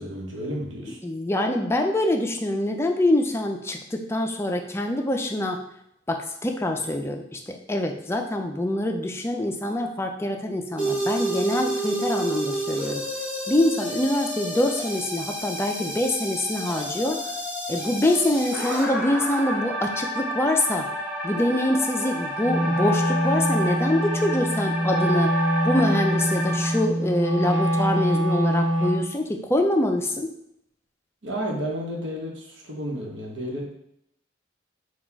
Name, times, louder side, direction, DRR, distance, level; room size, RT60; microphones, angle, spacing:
voice 1, 0.0-1.0 31.2-33.7, equal, 70° right, -1 dB, 1.1 m, -32 dB
voice 2, 1.0-5.6 6.1-13.0 13.5-17.4 17.7-25.3 25.6-30.3, left 1 dB, 15° left, 3 dB, 0.4 m, -25 dB
sound 1, 10.8-26.8, equal, 5° right, 1.5 m, -30 dB
Wind instrument woodwind instrument, 22.4-29.1, equal, 40° right, 1.5 m, -24 dB
4.1 x 2.3 x 4.5 m, 0.75 s
head